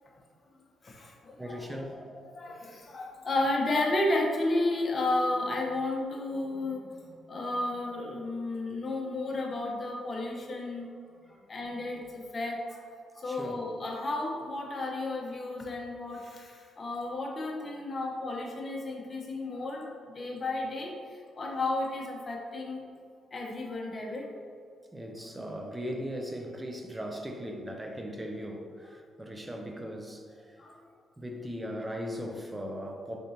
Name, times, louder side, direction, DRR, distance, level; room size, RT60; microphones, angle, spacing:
voice 1, 0.8-1.6 2.0-6.9 7.3-10.9 11.5-12.8 13.2-22.8 23.3-24.3 30.6-30.8, left 2 dB, 35° left, -1 dB, 0.7 m, -32 dB
voice 2, 1.4-2.0 13.2-13.6 24.9-30.2 30.5-30.6 31.2-33.2, equal, 15° right, 3 dB, 0.5 m, -38 dB
3.8 x 3.5 x 2.8 m, 2.2 s
cardioid pair, 90°, 0 cm